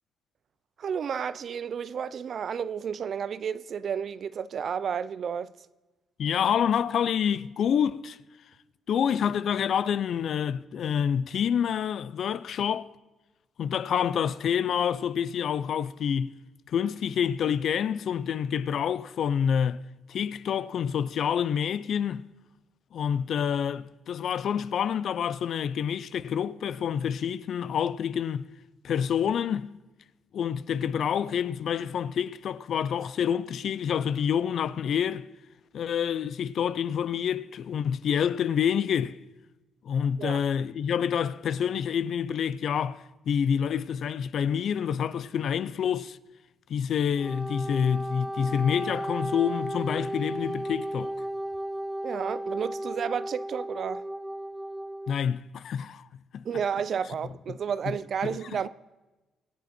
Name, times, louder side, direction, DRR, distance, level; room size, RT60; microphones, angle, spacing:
voice 1, 0.8-5.5 40.2-40.4 52.0-54.0 56.4-58.7, right 7 dB, 55° right, 0.5 m, -31 dB
voice 2, 6.2-8.2 8.9-12.9 13.6-16.4 16.7-19.8 20.1-22.2 22.9-28.5 28.8-29.7 30.3-35.3 35.7-39.2 39.8-46.2 46.7-51.1 55.1-56.1 56.3-56.4 57.5-57.6 58.2-58.4, left 8 dB, 65° left, 0.5 m, -27 dB
Wind instrument woodwind instrument, 47.1-55.1, right 1 dB, ahead, 0.4 m, -34 dB
24.0 x 8.2 x 4.4 m
cardioid pair, 90°, 0 cm